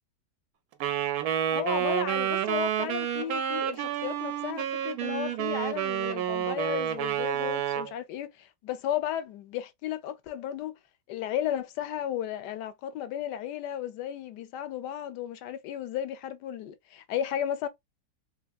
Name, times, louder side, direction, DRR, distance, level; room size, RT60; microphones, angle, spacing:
Wind instrument woodwind instrument, 0.8-7.9, right 10 dB, 70° right, 1.0 m, -29 dB
voice 1, 1.5-10.7 11.1-17.7, left 10 dB, 80° left, 1.2 m, -34 dB
3.4 x 2.8 x 2.3 m
omnidirectional pair, 1.9 m